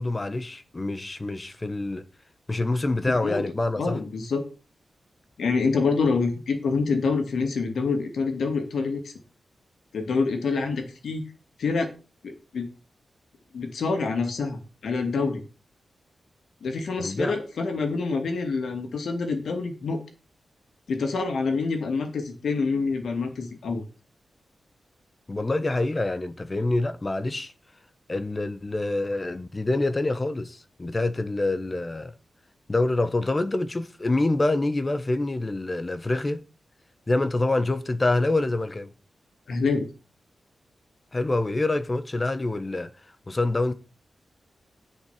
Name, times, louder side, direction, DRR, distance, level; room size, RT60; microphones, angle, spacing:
voice 1, 0.0-2.0 2.5-4.0 17.0-17.4 25.3-27.5 28.1-32.1 32.7-36.4 37.1-38.9 41.1-42.9 43.3-43.7, left 2 dB, 25° left, 0.9 m, -26 dB
voice 2, 3.1-3.4 3.8-4.4 5.4-9.1 9.9-11.2 11.6-11.9 12.2-12.7 13.5-15.4 16.6-20.0 20.9-23.8 39.5-39.9, left 4 dB, 80° left, 2.5 m, -26 dB
10.5 x 5.6 x 7.5 m
wide cardioid pair, 135°, 0 cm